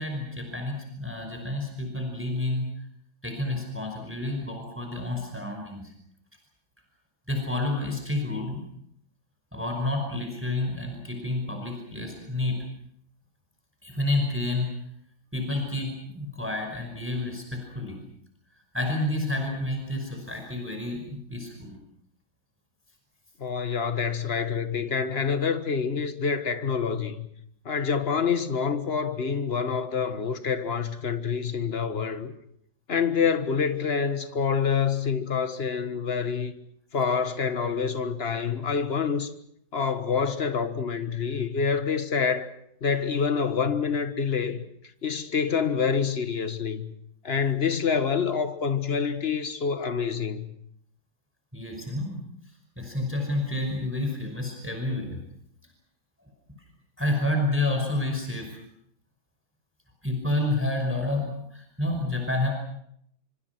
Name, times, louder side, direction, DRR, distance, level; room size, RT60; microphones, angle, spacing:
voice 1, 0.0-2.7 3.2-5.9 7.3-8.6 9.5-12.6 13.8-14.7 15.3-18.0 18.7-21.8 51.5-52.2 52.8-55.2 57.0-58.6 60.0-62.5, left 2 dB, 5° right, 5.5 m, -29 dB
voice 2, 23.4-27.3 27.6-32.3 32.9-36.5 36.9-39.3 39.7-42.5 42.8-44.6 45.0-46.9 47.2-50.5, left 6 dB, 35° left, 1.5 m, -27 dB
26.0 x 25.0 x 6.1 m
omnidirectional pair, 2.1 m